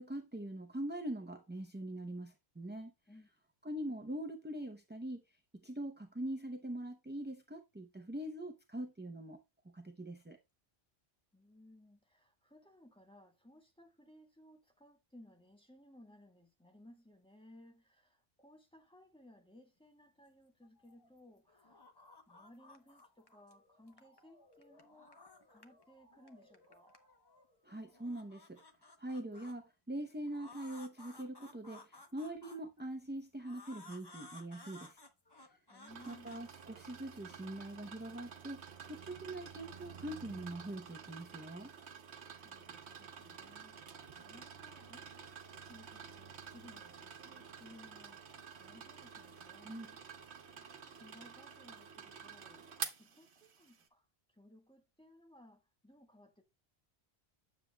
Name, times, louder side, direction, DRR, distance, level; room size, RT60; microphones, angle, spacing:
voice 1, 0.0-2.9 3.6-5.2 5.6-9.4 9.6-10.4 27.6-28.6 29.0-35.0 36.1-41.7 49.6-49.9, right 1 dB, 10° right, 0.6 m, -43 dB
voice 2, 11.3-21.9 22.3-25.2 25.5-27.0 35.7-36.5 42.4-50.0 50.5-52.7 53.0-56.4, left 1 dB, 5° left, 1.3 m, -61 dB
sound 1, 20.6-21.2 21.5-23.5 23.9-25.8 26.1-27.4 27.9-29.6 30.3-32.9 33.4-37.2, left 2 dB, 25° left, 0.8 m, -57 dB
Motor vehicle (road) / Siren, 22.6-28.5, left 1 dB, 70° left, 4.2 m, -69 dB
sound 2, 35.9-53.8, right 6 dB, 75° right, 1.2 m, -50 dB
9.6 x 7.4 x 2.3 m
omnidirectional pair, 1.1 m